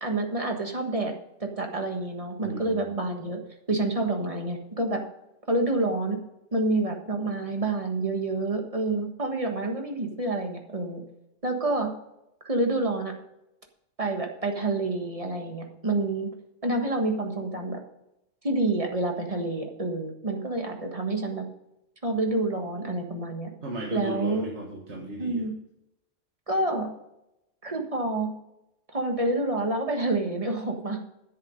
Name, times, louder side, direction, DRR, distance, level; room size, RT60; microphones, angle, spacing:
voice 1, 0.0-1.1 1.4-3.4 3.7-5.0 5.5-6.2 6.5-11.0 11.4-11.9 12.4-13.1 14.0-16.3 16.6-17.8 18.4-21.4 22.0-23.5 23.9-24.4 25.2-25.5 26.5-26.9 27.6-28.3 28.9-31.0, right 2 dB, 30° right, 3 dB, 1.5 m, -28 dB
voice 2, 2.4-2.8 23.6-25.5, right 1 dB, 70° right, -1 dB, 1.9 m, -35 dB
10.0 x 7.9 x 5.2 m, 0.87 s
omnidirectional pair, 1.2 m